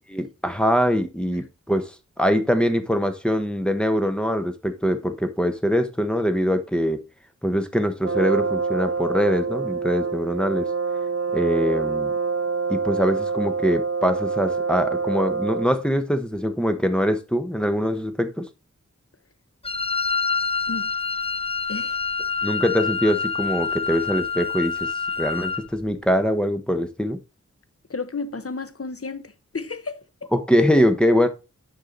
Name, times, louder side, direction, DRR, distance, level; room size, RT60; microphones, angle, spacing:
voice 1, 0.1-7.0 7.4-10.7 11.3-12.1 12.7-18.5 22.4-24.9 25.2-27.2 30.3-31.3, equal, 5° left, 1.1 m, -23 dB
Brass instrument, 8.0-15.8, right 4 dB, 55° right, 0.8 m, -26 dB
Wind instrument woodwind instrument, 19.6-25.7, left 5 dB, 20° left, 0.7 m, -27 dB
voice 2, 21.7-22.0 27.9-30.3, left 4 dB, 50° left, 0.8 m, -33 dB
9.9 x 5.7 x 3.9 m
wide cardioid pair, 55°, 29 cm